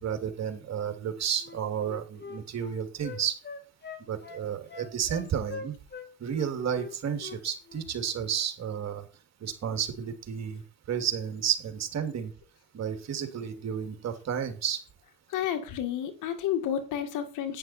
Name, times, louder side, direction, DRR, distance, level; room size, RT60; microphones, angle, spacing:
voice 1, 0.0-3.4 4.1-5.7 6.2-9.1 9.4-12.3 12.7-14.8, right 8 dB, 60° right, 7 dB, 2.9 m, -32 dB
Wind instrument woodwind instrument, 1.4-6.1 6.3-7.4 7.7-7.9, left 4 dB, 35° left, 2.6 m, -42 dB
voice 2, 15.3-17.6, left 10 dB, 90° left, 7 dB, 2.3 m, -31 dB
11.0 x 9.8 x 4.4 m, 0.30 s
cardioid pair, 90°, 30 cm